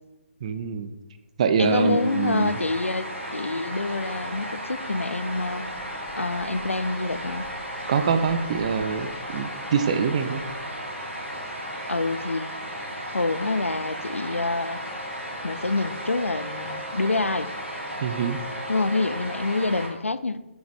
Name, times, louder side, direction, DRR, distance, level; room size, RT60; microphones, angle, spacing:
voice 1, 0.4-0.9 1.4-2.5 7.9-10.4 18.0-18.4, right 6 dB, 30° right, 9 dB, 0.4 m, -24 dB
voice 2, 1.6-5.7 6.2-7.4 11.9-12.5 13.1-14.8 15.4-17.5 18.7-20.4, left 3 dB, 80° left, 14 dB, 0.4 m, -26 dB
sound 1, 1.6-19.9, equal, 85° right, 1.6 m, -35 dB
6.4 x 4.7 x 3.2 m, 1.0 s
figure-of-eight pair, 140°, 7 cm